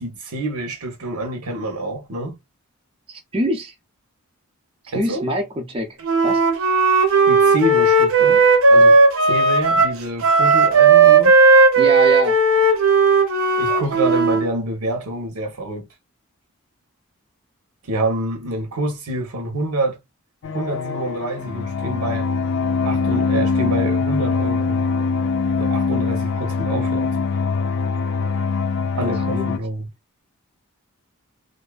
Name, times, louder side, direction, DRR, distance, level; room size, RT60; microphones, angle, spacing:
voice 1, 0.0-2.3 4.9-5.2 7.3-11.3 13.6-15.9 17.8-20.0 20.5-22.3 22.8-24.8 25.6-27.4 28.9-29.9, right 1 dB, 90° right, 0.8 m, -27 dB
voice 2, 3.1-3.7 4.8-6.0 6.2-6.4 11.8-12.4 29.3-29.6, equal, 25° right, 0.4 m, -25 dB
Wind instrument woodwind instrument, 6.0-14.5, right 3 dB, 65° right, 0.6 m, -14 dB
sound 1, 20.4-29.6, left 4 dB, 55° left, 0.4 m, -22 dB
2.6 x 2.3 x 2.3 m
head